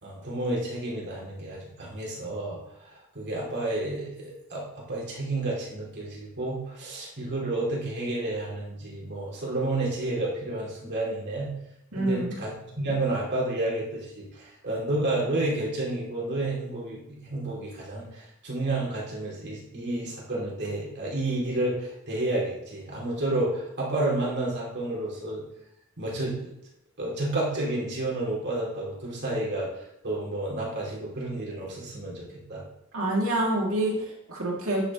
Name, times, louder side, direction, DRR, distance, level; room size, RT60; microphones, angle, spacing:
voice 1, 0.0-11.5 11.9-12.5 12.7-25.4 26.0-26.5 27.0-32.6, right 2 dB, 55° right, -4 dB, 2.7 m, -30 dB
voice 2, 11.9-12.3 32.9-34.9, right 1 dB, 75° right, -2 dB, 2.4 m, -27 dB
10.5 x 6.6 x 3.0 m, 0.82 s
head